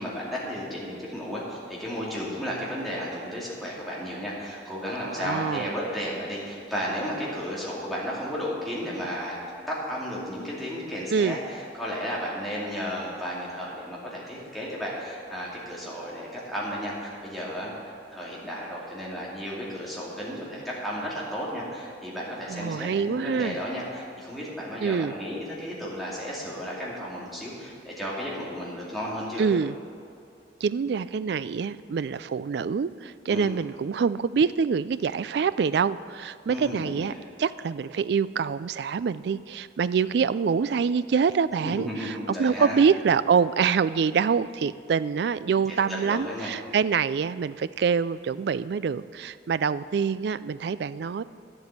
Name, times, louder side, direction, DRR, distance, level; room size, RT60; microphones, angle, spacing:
voice 1, 0.0-9.4 9.7-29.5 33.3-33.5 36.5-37.2 41.6-42.8 45.7-46.5, equal, ahead, -7 dB, 2.6 m, -33 dB
voice 2, 5.0-5.7 11.1-11.4 22.5-23.6 24.8-25.1 29.4-29.7 30.6-37.1 37.4-51.2, right 6 dB, 60° right, 16 dB, 0.3 m, -25 dB
10.5 x 8.0 x 8.2 m, 2.4 s
head